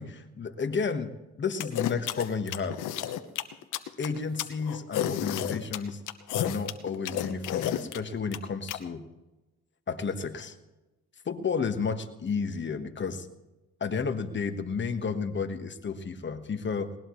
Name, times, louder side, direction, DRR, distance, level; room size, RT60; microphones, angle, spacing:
voice 1, 0.0-2.8 4.0-6.0 6.4-9.0 9.9-10.6 11.2-13.3 13.8-16.9, left 5 dB, 40° left, 8 dB, 1.4 m, -32 dB
sound 1, 1.6-8.8, left 11 dB, 85° left, 1.0 m, -31 dB
20.0 x 19.5 x 3.2 m, 1.1 s
cardioid pair, 90°, 30 cm